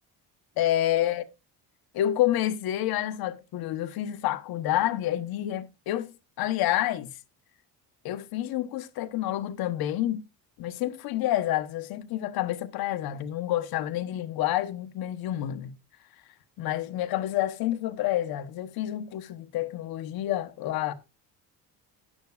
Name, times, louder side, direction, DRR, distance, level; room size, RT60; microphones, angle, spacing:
voice 1, 0.6-1.2 1.9-7.1 8.0-10.2 10.6-15.7 16.6-20.9, left 13 dB, 65° left, 1.1 m, -28 dB
13.0 x 10.5 x 2.4 m
cardioid pair, 180°, 39 cm